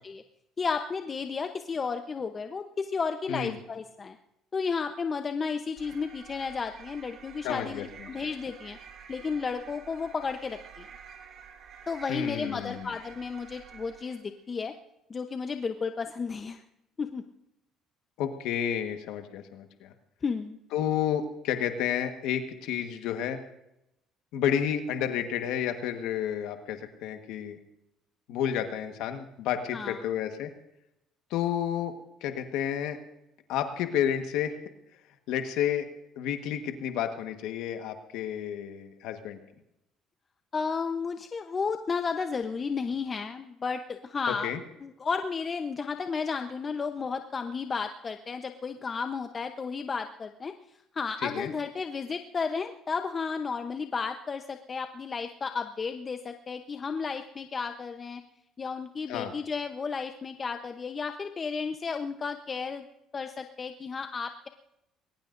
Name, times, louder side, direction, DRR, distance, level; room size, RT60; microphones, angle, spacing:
voice 1, 0.6-4.2 4.5-8.8 9.1-10.9 11.9-14.7 15.1-16.6 17.0-17.2 20.2-20.6 29.7-30.0 40.5-44.5 44.8-58.2 58.6-62.9 63.1-64.5, left 5 dB, 35° left, 7 dB, 0.8 m, -33 dB
sound 1, 5.8-14.3, right 7 dB, 55° right, 1.7 m, -49 dB
voice 2, 7.4-8.1 12.1-12.9 18.2-19.9 20.7-23.4 24.3-27.6 28.3-30.5 31.3-31.9 32.2-33.0 33.5-34.6 35.3-35.9 36.2-39.4 44.4-44.6 51.2-51.5 59.1-59.3, left 9 dB, 80° left, 6 dB, 1.4 m, -31 dB
21.5 x 19.5 x 2.6 m, 0.85 s
cardioid pair, 95°, 0 cm